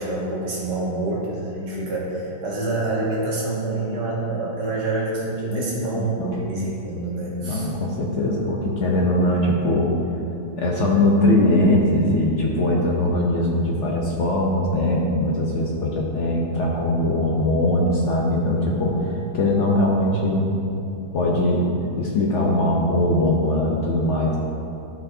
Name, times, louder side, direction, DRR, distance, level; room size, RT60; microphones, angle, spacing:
voice 1, 0.0-7.7, right 2 dB, 75° right, -5 dB, 2.0 m, -27 dB
voice 2, 5.5-6.4 7.4-9.9 10.6-20.5 21.1-21.7 22.0-24.4, left 1 dB, 60° left, -2 dB, 0.8 m, -21 dB
11.5 x 4.5 x 2.7 m, 2.7 s
omnidirectional pair, 1.8 m